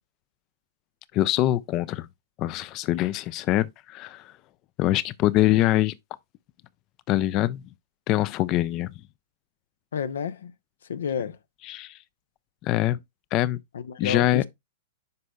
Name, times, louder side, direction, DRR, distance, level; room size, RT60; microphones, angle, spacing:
voice 1, 1.1-2.1 2.4-4.3 4.8-5.9 7.1-7.6 8.1-8.9 11.6-12.0 12.6-13.0 13.3-13.6 14.0-14.4, left 15 dB, 40° left, 0.3 m, -24 dB
voice 2, 9.9-10.5 10.9-11.4 13.7-14.5, left 7 dB, 80° left, 0.6 m, -30 dB
9.5 x 5.3 x 2.3 m
hypercardioid pair, 120°, 0 cm